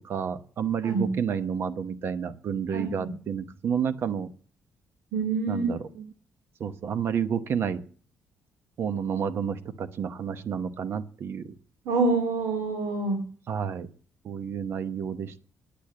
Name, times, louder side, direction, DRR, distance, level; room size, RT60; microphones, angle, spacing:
voice 1, 0.0-4.3 5.5-6.1 6.6-7.8 8.8-11.5 13.5-13.9 14.2-15.5, right 7 dB, 50° right, 11 dB, 0.9 m, -30 dB
voice 2, 5.1-5.6 11.8-13.2, right 3 dB, 75° right, -1 dB, 3.2 m, -26 dB
10.0 x 8.5 x 7.5 m, 0.43 s
cardioid pair, 160°, 6 cm